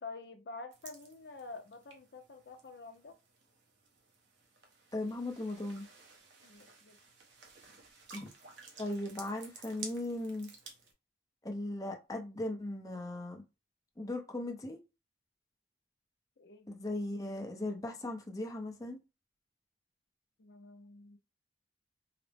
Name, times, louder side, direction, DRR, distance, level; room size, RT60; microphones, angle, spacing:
voice 1, 0.0-3.2 6.4-7.0 16.4-16.7 20.4-21.2, left 3 dB, 65° left, 0.5 m, -48 dB
sound 1, 0.7-10.9, right 5 dB, 85° right, 0.9 m, -53 dB
voice 2, 4.9-5.9 8.1-8.3 8.8-10.5 11.4-13.4 14.0-14.8 16.7-19.0, left 1 dB, 20° left, 0.6 m, -38 dB
4.8 x 2.0 x 3.4 m
head